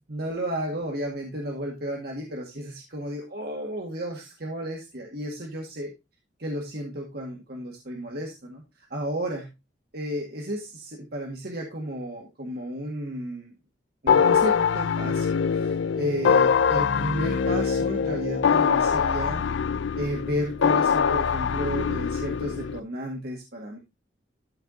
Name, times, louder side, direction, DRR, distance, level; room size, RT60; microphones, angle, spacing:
voice 1, 0.1-5.9 6.4-9.5 9.9-13.5 14.0-19.4 20.0-23.8, equal, 55° right, 0 dB, 2.0 m, -33 dB
sound 1, 14.1-22.8, left 6 dB, 80° left, 0.4 m, -23 dB
13.5 x 4.7 x 3.9 m, 0.25 s
head